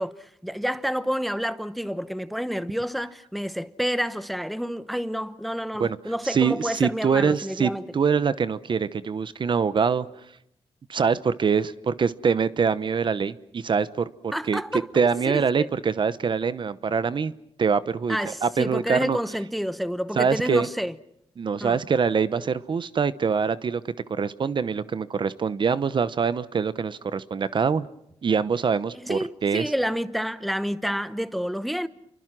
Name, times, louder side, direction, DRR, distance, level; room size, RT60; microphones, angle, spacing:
voice 1, 0.0-7.8 14.3-14.9 15.3-15.4 18.1-20.9 21.6-21.8 29.0-31.9, equal, ahead, 0.9 m, -29 dB
voice 2, 6.2-10.2 10.9-17.3 17.6-19.2 20.2-20.7 21.4-27.9 28.2-29.7, right 6 dB, 45° right, 0.9 m, -24 dB
29.0 x 24.0 x 6.1 m
wide cardioid pair, 115°, 11 cm